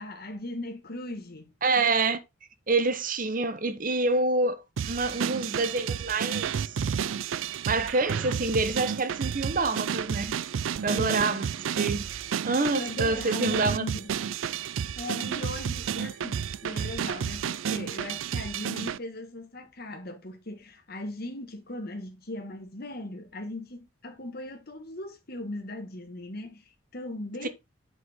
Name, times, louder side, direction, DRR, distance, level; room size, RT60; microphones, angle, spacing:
voice 1, 0.0-1.5 10.9-11.4 12.5-14.1 15.0-27.5, left 1 dB, 50° left, 1.7 m, -38 dB
voice 2, 1.6-2.2 2.7-4.6 4.8-6.8 7.7-10.4 10.8-12.0 12.4-13.8 27.4-27.5, right 3 dB, 40° right, 1.0 m, -27 dB
sound 1, 4.8-19.0, right 7 dB, 75° right, 0.4 m, -31 dB
8.0 x 5.5 x 3.7 m
head